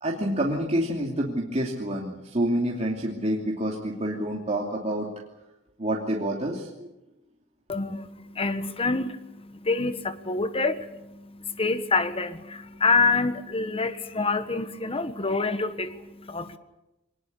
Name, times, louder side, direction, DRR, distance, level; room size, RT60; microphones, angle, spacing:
voice 1, 0.0-5.1 5.8-6.9, right 1 dB, 35° right, -1 dB, 2.8 m, -28 dB
voice 2, 7.7-16.6, left 3 dB, 30° left, 11 dB, 1.5 m, -27 dB
23.5 x 20.0 x 8.5 m, 0.96 s
head